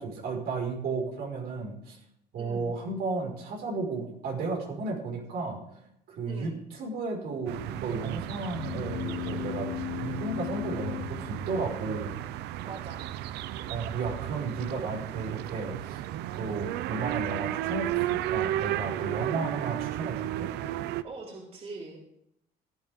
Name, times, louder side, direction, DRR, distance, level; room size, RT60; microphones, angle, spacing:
voice 1, 0.0-2.0 2.3-5.8 6.1-9.7 10.0-12.1 13.7-16.1 16.3-20.5, right 3 dB, 70° right, -2 dB, 5.1 m, -34 dB
voice 2, 2.4-2.7 6.3-6.6 12.7-13.1 19.1-19.5 21.0-22.0, right 3 dB, 35° right, -3 dB, 4.2 m, -42 dB
sound 1, 7.5-21.0, right 14 dB, 85° right, 0.6 m, -34 dB
sound 2, 8.5-12.2, left 15 dB, 65° left, 0.6 m, -37 dB
17.5 x 12.5 x 3.7 m, 0.75 s
cardioid pair, 110°, 17 cm